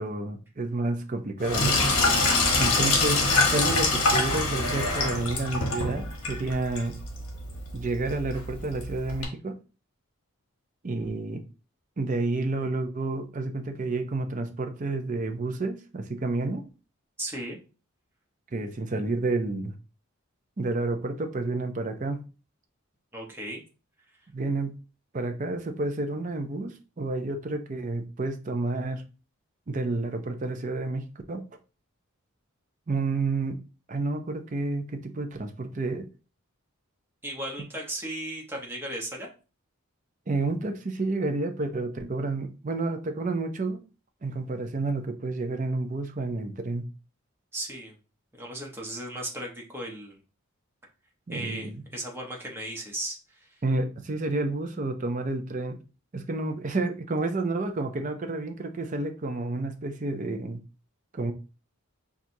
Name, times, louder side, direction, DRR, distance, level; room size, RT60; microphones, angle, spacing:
voice 1, 0.0-1.8 2.6-3.2 3.5-7.0 7.7-9.6 10.8-11.4 12.0-16.6 18.5-19.7 20.6-22.3 24.3-24.8 25.1-29.0 29.7-31.4 32.9-33.6 33.9-36.1 40.3-43.8 44.2-46.9 51.3-51.8 53.6-55.8 56.1-60.6 61.1-61.3, right 2 dB, 35° right, 0.5 m, -30 dB
Sink (filling or washing), 1.4-9.2, left 3 dB, 75° left, 1.0 m, -25 dB
voice 2, 17.2-17.6 23.1-23.6 37.2-39.3 47.5-47.9 48.4-50.2 51.3-53.6, right 1 dB, 10° right, 0.9 m, -36 dB
5.9 x 2.4 x 2.7 m
head